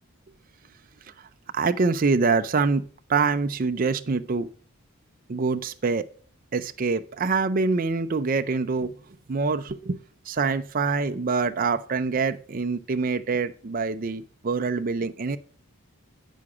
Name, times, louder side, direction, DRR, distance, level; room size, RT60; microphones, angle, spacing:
voice 1, 1.5-4.5 5.3-6.0 6.5-8.9 9.3-10.0 10.3-15.4, right 4 dB, 40° right, 0.4 m, -25 dB
8.5 x 6.3 x 4.8 m
head